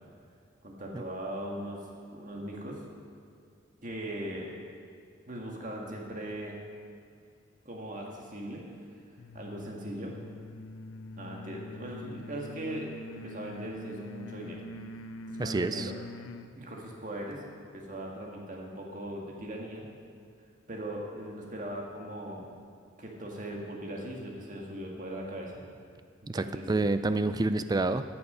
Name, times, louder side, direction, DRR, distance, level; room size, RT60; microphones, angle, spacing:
voice 1, 0.6-1.8 2.1-2.8 3.8-4.5 5.3-6.6 7.7-8.6 9.3-10.1 11.2-12.9 13.2-14.6 15.3-15.9 16.6-19.9 20.7-22.5 23.0-25.6 26.2-26.7, right 1 dB, 40° right, -1 dB, 1.8 m, -39 dB
sound 1, 9.2-16.6, left 1 dB, 80° left, 0.5 m, -44 dB
voice 2, 15.4-15.9 26.3-28.0, right 2 dB, 20° right, 11 dB, 0.3 m, -28 dB
15.0 x 7.1 x 5.6 m, 2.3 s
head